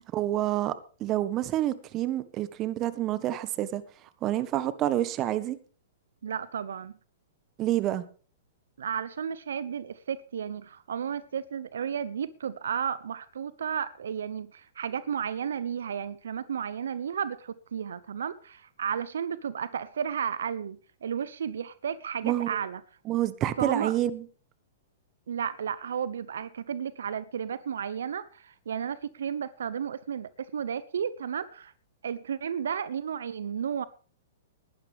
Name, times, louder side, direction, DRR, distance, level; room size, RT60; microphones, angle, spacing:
voice 1, 0.0-3.8 4.2-5.6 7.6-8.0 22.2-22.6 23.1-24.2, right 13 dB, 30° right, 1.3 m, -28 dB
voice 2, 6.2-6.9 8.8-22.8 23.6-23.9 25.3-31.7 32.0-33.9, right 8 dB, 75° right, 0.7 m, -33 dB
19.5 x 12.0 x 3.5 m
hypercardioid pair, 120°, 0 cm